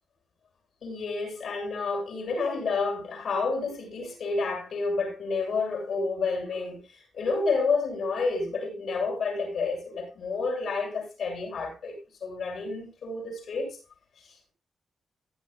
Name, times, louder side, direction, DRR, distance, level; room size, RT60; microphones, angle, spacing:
voice 1, 0.8-13.8 14.2-14.5, left 4 dB, 70° left, 7.7 m, -30 dB
16.0 x 11.0 x 2.5 m
cardioid pair, 95°, 0 cm